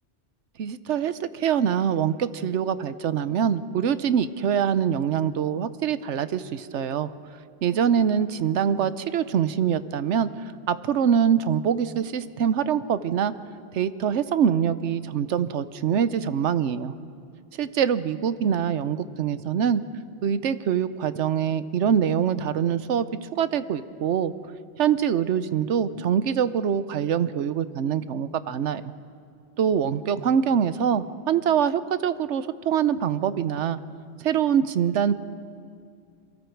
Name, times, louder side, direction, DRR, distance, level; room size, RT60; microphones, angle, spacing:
voice 1, 0.6-7.1 7.6-13.3 13.7-16.9 17.5-19.8 20.2-24.3 24.8-28.9 29.6-33.8 34.2-35.1, right 8 dB, 90° right, 14 dB, 1.1 m, -24 dB
28.0 x 23.0 x 4.6 m, 2.4 s
omnidirectional pair, 1.2 m